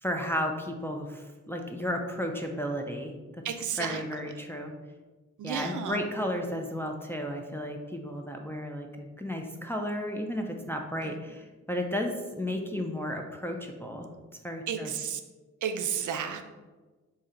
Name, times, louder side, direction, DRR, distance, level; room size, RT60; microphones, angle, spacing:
voice 1, 0.0-3.4 3.8-4.7 5.4-14.1 14.4-14.9, equal, 10° left, 2 dB, 0.4 m, -33 dB
voice 2, 3.4-4.0 5.4-6.0 14.7-15.2 15.6-16.5, right 7 dB, 70° right, 7 dB, 0.5 m, -32 dB
3.1 x 2.7 x 3.7 m, 1.3 s
cardioid pair, 50°, 31 cm